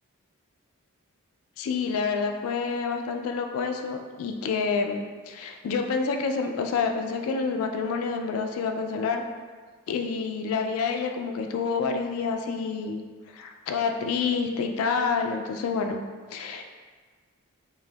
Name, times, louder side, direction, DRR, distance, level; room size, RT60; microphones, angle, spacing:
voice 1, 1.6-9.2 9.9-13.0 13.3-16.0 16.3-16.7, left 5 dB, 75° left, 5 dB, 0.3 m, -28 dB
5.0 x 2.7 x 2.3 m, 1.5 s
head